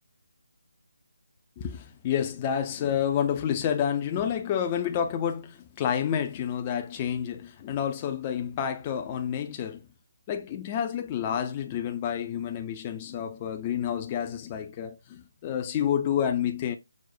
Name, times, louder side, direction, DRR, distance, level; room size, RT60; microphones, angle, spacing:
voice 1, 1.6-9.8 10.3-16.8, left 9 dB, 25° left, 0.4 m, -29 dB
6.1 x 2.1 x 2.5 m
figure-of-eight pair, 155°, 0 cm